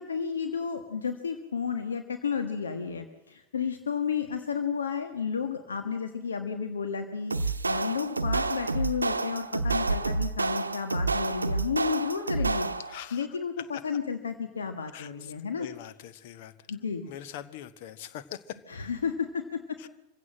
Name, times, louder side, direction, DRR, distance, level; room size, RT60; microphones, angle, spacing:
voice 1, 0.0-12.7 13.1-15.7 16.7-17.0 18.7-19.8, left 6 dB, 70° left, 7 dB, 1.5 m, -32 dB
sound 1, 7.3-13.0, right 3 dB, 80° right, 0.8 m, -29 dB
voice 2, 12.9-13.3 13.6-13.9 14.9-15.3 15.6-16.5 17.1-18.6 19.8-19.9, left 10 dB, 50° left, 14 dB, 1.2 m, -42 dB
25.5 x 16.0 x 7.6 m, 0.93 s
figure-of-eight pair, 90°, 0 cm